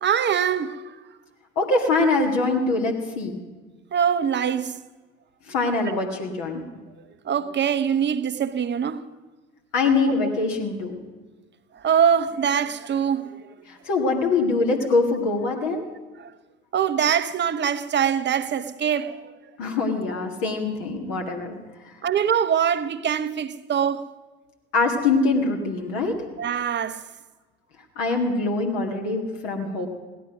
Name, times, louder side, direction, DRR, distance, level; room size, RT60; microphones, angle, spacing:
voice 1, 0.0-1.0 3.9-4.8 5.9-6.0 7.2-9.1 10.1-10.3 11.7-13.5 16.2-16.3 16.7-19.3 22.0-24.1 26.4-27.0, right 8 dB, 35° right, 0.8 m, -23 dB
voice 2, 1.6-3.4 5.5-6.6 9.7-10.9 13.7-15.9 19.6-21.6 24.7-26.2 28.0-29.9, left 3 dB, 65° left, 1.9 m, -23 dB
17.0 x 12.0 x 6.1 m
figure-of-eight pair, 55°, 33 cm